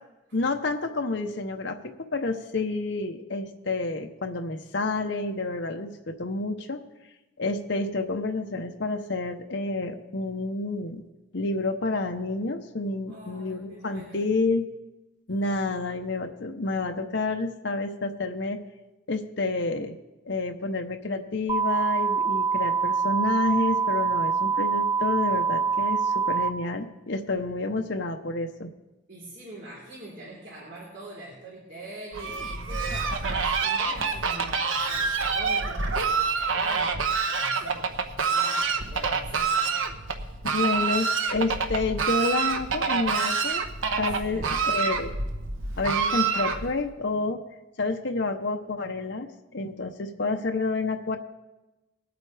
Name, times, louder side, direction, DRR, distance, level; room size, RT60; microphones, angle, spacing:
voice 1, 0.3-6.8 7.4-11.0 11.3-14.6 15.3-18.6 19.1-20.0 20.3-28.7 40.4-43.6 44.0-45.1 45.8-47.4 47.8-51.2, left 3 dB, 60° left, 4 dB, 0.8 m, -29 dB
voice 2, 13.0-14.3 29.1-39.9 44.2-44.5, right 1 dB, 65° right, -6 dB, 3.8 m, -44 dB
sound 1, 21.5-26.5, right 5 dB, 20° right, 0.7 m, -25 dB
Fowl, 32.1-46.9, right 5 dB, 80° right, 1.1 m, -27 dB
21.0 x 8.9 x 3.4 m, 1.1 s
head